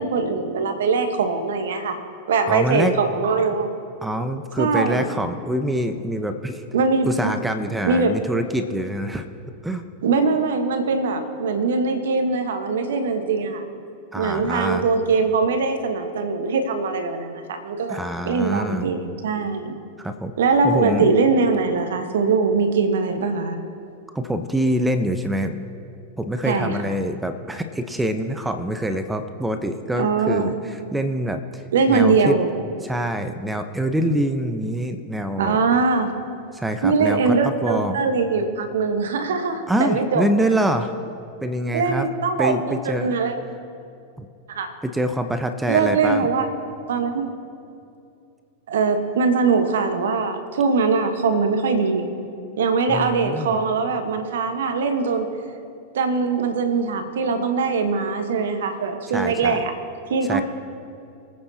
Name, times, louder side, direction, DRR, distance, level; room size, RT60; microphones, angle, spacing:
voice 1, 0.0-2.0 2.3-3.7 4.6-5.0 6.7-7.4 7.8-8.2 10.0-13.6 14.1-18.0 18.2-19.8 20.4-23.6 26.4-26.7 30.0-30.5 31.7-32.5 35.4-36.1 36.8-40.3 41.7-43.3 44.5-44.7 45.7-46.5 46.9-47.3 48.7-52.1 52.6-55.3 55.9-59.7 60.1-60.4, right 4 dB, 70° right, 6 dB, 1.2 m, -21 dB
voice 2, 2.5-3.0 4.0-6.6 7.1-9.3 9.6-9.8 14.1-14.9 17.9-18.9 20.0-20.3 20.6-21.1 24.1-25.6 26.2-31.6 31.9-32.3 32.8-35.6 36.5-38.0 39.7-40.9 41.4-42.1 42.4-43.1 44.2-44.3 44.8-46.3 52.9-53.6 59.1-59.6 60.2-60.4, right 1 dB, 5° right, 8 dB, 0.8 m, -25 dB
24.0 x 8.8 x 2.8 m, 2.6 s
hypercardioid pair, 95°, 0 cm